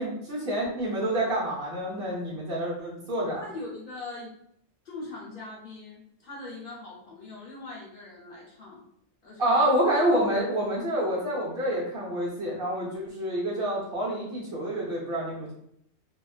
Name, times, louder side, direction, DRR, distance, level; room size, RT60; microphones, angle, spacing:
voice 1, 0.0-3.4 9.4-15.5, right 1 dB, 55° right, -4 dB, 0.9 m, -27 dB
voice 2, 3.3-4.3 4.8-8.8 9.2-9.6, left 2 dB, 50° left, -5 dB, 0.9 m, -41 dB
2.4 x 2.2 x 2.3 m, 0.72 s
omnidirectional pair, 1.2 m